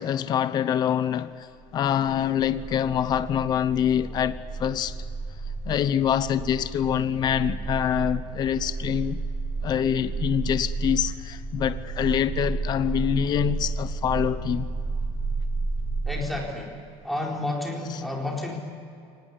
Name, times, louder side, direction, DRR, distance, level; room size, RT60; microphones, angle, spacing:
voice 1, 0.0-1.5 1.7-5.0 5.6-9.2 9.6-14.7 17.9-18.0, left 9 dB, 35° left, 0.8 m, -25 dB
sound 1, 1.6-16.0, right 3 dB, 30° right, 4.4 m, -32 dB
voice 2, 16.0-16.8 17.0-18.6, left 1 dB, ahead, 4.1 m, -30 dB
24.5 x 19.0 x 9.7 m
cardioid pair, 160°, 12 cm